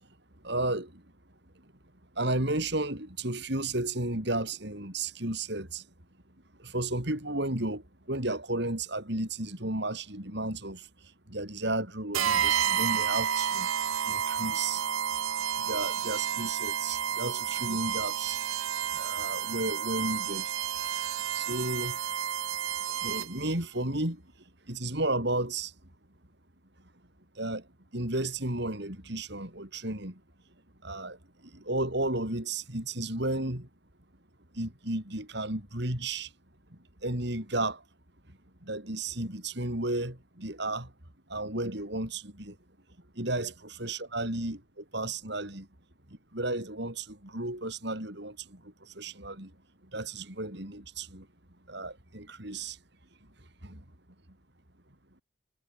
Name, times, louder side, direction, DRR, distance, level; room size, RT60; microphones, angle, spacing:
voice 1, 0.4-0.9 2.2-5.8 6.6-7.8 8.1-10.8 11.3-13.7 14.1-14.8 15.6-18.4 18.9-20.5 21.3-22.0 23.0-24.2 24.7-25.7 27.4-27.6 27.9-30.1 30.8-31.2 31.5-33.7 34.6-36.3 37.0-37.8 38.7-40.9 41.3-42.5 43.2-45.7 46.3-48.4 49.0-49.5 49.9-51.2 51.7-52.8 53.6-53.8, right 2 dB, 55° right, 4.5 m, -33 dB
sound 1, 12.1-23.5, right 9 dB, 90° right, 0.9 m, -31 dB
head